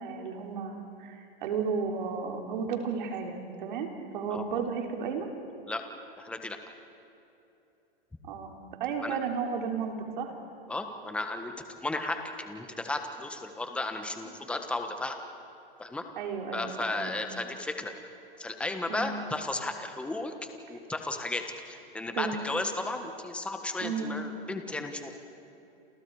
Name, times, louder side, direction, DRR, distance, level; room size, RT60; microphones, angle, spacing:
voice 1, 0.0-5.3 8.2-8.5 8.8-10.3 16.2-17.2 18.9-19.2 20.7-20.8 22.1-22.3 23.8-24.2, right 6 dB, 55° right, 2 dB, 3.9 m, -33 dB
voice 2, 6.2-6.6 9.0-9.2 10.7-15.2 15.8-16.0 16.5-17.9 18.4-20.3 20.7-25.1, left 2 dB, 5° left, 6 dB, 1.4 m, -34 dB
29.0 x 28.0 x 4.9 m, 2.8 s
hypercardioid pair, 155°, 30 cm